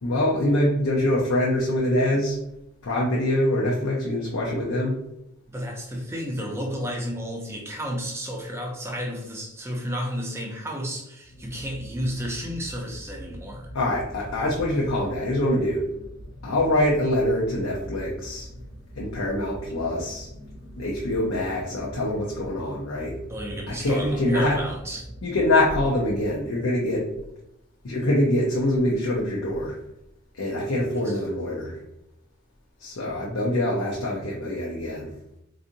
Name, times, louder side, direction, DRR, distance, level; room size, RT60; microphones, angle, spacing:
voice 1, 0.0-2.4 2.8-5.0 13.7-15.8 16.4-18.5 19.0-20.3 20.8-23.2 23.8-24.6 25.2-27.1 27.8-29.8 30.3-31.8 32.8-35.1, left 1 dB, 80° left, -4 dB, 0.7 m, -24 dB
voice 2, 5.5-13.7 23.3-25.1 31.1-31.2, equal, 10° right, 0 dB, 0.5 m, -32 dB
sound 1, 11.2-26.6, equal, 50° left, 1.0 m, -42 dB
4.0 x 2.6 x 2.6 m, 0.83 s
head